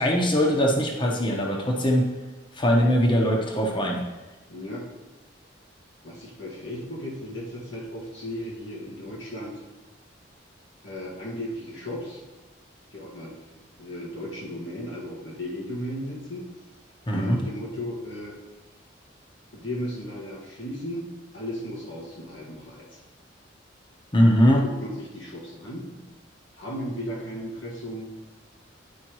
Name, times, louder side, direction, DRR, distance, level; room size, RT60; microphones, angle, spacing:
voice 1, 0.0-2.1 2.5-4.0 17.1-17.4 24.1-24.7, equal, 25° left, 0 dB, 1.0 m, -21 dB
voice 2, 4.5-4.9 6.0-9.6 10.8-12.2 12.9-13.5 13.8-16.4 17.1-18.4 19.5-21.1 21.3-23.0 24.5-25.9 26.6-28.1, equal, 85° left, -4 dB, 1.7 m, -35 dB
10.5 x 5.1 x 3.1 m, 1.1 s
head